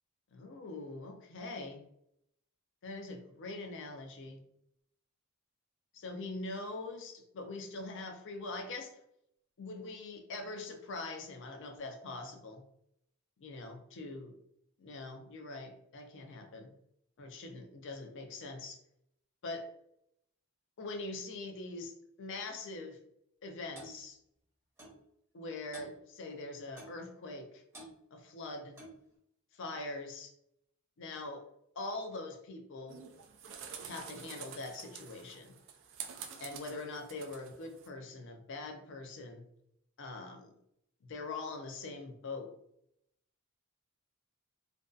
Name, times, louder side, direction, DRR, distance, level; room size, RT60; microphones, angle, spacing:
voice 1, 0.3-1.8 2.8-4.4 5.9-9.0 9.6-12.6 13.4-14.3 14.8-16.7 17.2-18.8 19.4-19.7 20.8-21.9 22.2-23.0 23.4-24.2 25.3-27.6 28.1-28.8 29.5-30.3 31.0-31.5 31.8-33.0 33.8-35.5 36.4-39.4 40.0-40.5 41.0-42.5, left 2 dB, 60° left, 5 dB, 0.5 m, -43 dB
Clock, 23.8-24.0 24.8-25.0 25.7-26.0 26.8-27.0 27.7-27.9 28.8-29.0, right 1 dB, 10° right, 0.7 m, -50 dB
sound 1, 32.9-37.9, right 7 dB, 60° right, 0.3 m, -48 dB
2.5 x 2.2 x 2.3 m, 0.75 s
head